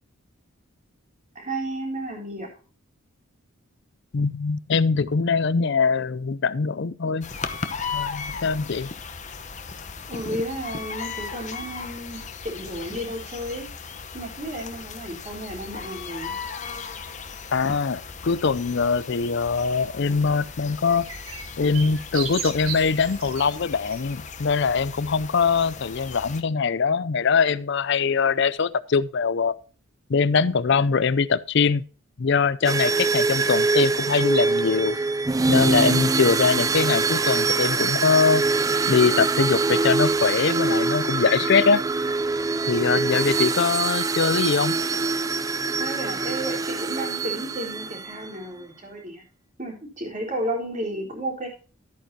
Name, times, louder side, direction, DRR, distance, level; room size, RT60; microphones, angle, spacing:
voice 1, 1.3-2.5 10.1-12.2 12.4-13.7 14.1-16.3 45.8-49.2 49.6-51.5, right 1 dB, 35° right, 3.9 m, -32 dB
voice 2, 4.1-7.3 7.9-8.9 17.5-21.1 21.6-29.5 30.1-31.8 32.2-35.0 35.5-38.4 38.9-41.8 42.7-44.8, left 5 dB, 55° left, 0.5 m, -22 dB
sound 1, 7.2-26.4, left 5 dB, 35° left, 0.9 m, -37 dB
sound 2, 20.9-23.4 23.9-24.0, right 7 dB, 65° right, 1.9 m, -35 dB
sound 3, 32.6-48.3, right 3 dB, 15° right, 0.3 m, -24 dB
13.0 x 9.0 x 2.8 m
head